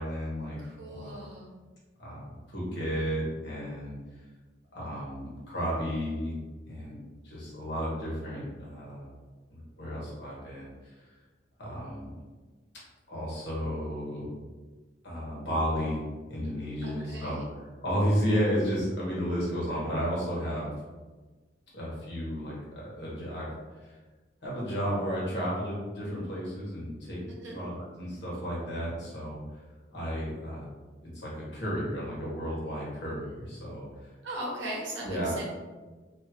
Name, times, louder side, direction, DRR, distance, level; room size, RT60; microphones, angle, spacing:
voice 1, 0.0-0.6 0.9-1.2 2.0-4.2 4.7-6.4 6.7-7.0 7.2-9.1 9.5-10.9 11.6-12.1 13.1-14.3 15.0-16.0 16.3-20.7 21.7-23.5 23.8-24.0 24.4-27.2 27.5-29.6 29.9-30.7 31.1-33.9 35.0-35.4, equal, 65° left, -6 dB, 1.2 m, -33 dB
voice 2, 0.6-1.5 16.8-17.4 27.3-27.6 34.2-35.5, right 1 dB, 80° right, -3 dB, 0.8 m, -38 dB
2.6 x 2.4 x 2.9 m, 1.3 s
head